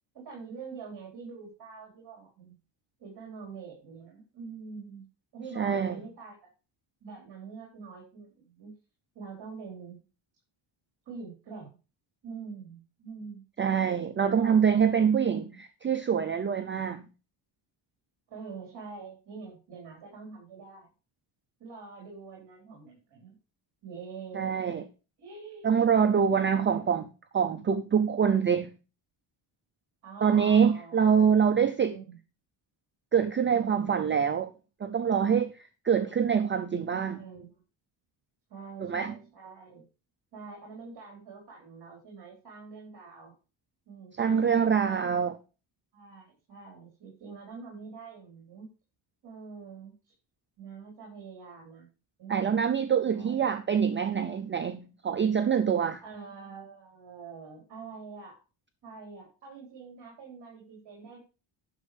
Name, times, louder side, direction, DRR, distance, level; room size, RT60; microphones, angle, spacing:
voice 1, 0.1-2.6 3.0-5.0 5.3-6.5 7.0-8.7 9.1-10.0 11.1-11.8 12.2-13.4 14.2-14.8 15.2-15.6 18.3-20.9 21.6-23.3 23.8-24.7 25.2-26.7 30.0-31.4 31.9-32.2 33.5-34.0 35.9-36.3 37.2-37.5 38.5-39.8 40.3-43.3 43.9-45.2 45.9-48.7 49.2-50.1 50.6-51.9 52.2-52.7 53.1-53.5 56.0-58.4 58.8-61.2, right 5 dB, 50° right, 4.2 m, -45 dB
voice 2, 5.6-5.9 13.6-17.1 24.3-24.8 25.6-27.1 27.3-28.7 30.2-32.0 33.1-34.5 34.8-37.2 38.8-39.1 44.2-45.3 52.3-56.0, right 7 dB, 25° right, 0.5 m, -25 dB
11.0 x 6.4 x 5.1 m
cardioid pair, 170°, 50 cm